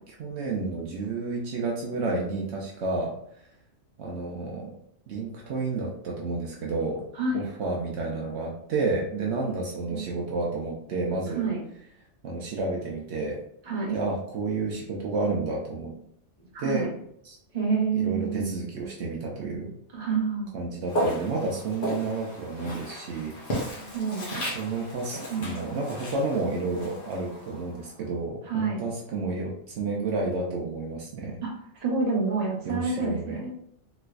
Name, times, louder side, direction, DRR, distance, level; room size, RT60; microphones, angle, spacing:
voice 1, 0.2-3.1 4.0-4.7 5.1-7.0 7.3-11.5 12.2-13.4 13.9-15.9 16.6-16.9 17.2-17.4 17.9-19.7 20.5-23.4 23.6-23.8 24.5-31.4 32.7-33.4, right 3 dB, 70° right, -2 dB, 0.9 m, -30 dB
voice 2, 13.7-14.0 16.5-16.9 17.5-18.5 19.9-20.5 23.8-24.7 25.3-25.5 28.5-28.8 31.4-31.5 31.8-33.5, right 4 dB, 35° right, -3 dB, 1.0 m, -28 dB
Walk footsteps, 20.9-28.0, equal, 50° left, 1.2 m, -34 dB
3.3 x 3.0 x 2.3 m, 0.71 s
omnidirectional pair, 1.2 m